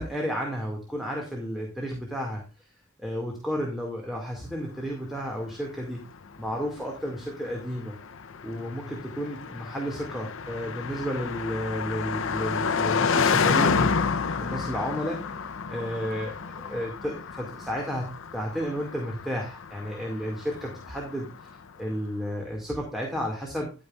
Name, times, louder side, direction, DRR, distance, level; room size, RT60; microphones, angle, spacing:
voice 1, 0.0-2.4 3.0-6.0 6.4-8.0 8.4-14.0 14.4-15.2 15.7-23.7, equal, ahead, -1 dB, 2.3 m, -32 dB
Car passing by, 5.2-21.6, left 5 dB, 65° left, 0.6 m, -30 dB
11.0 x 9.1 x 2.5 m, 0.33 s
head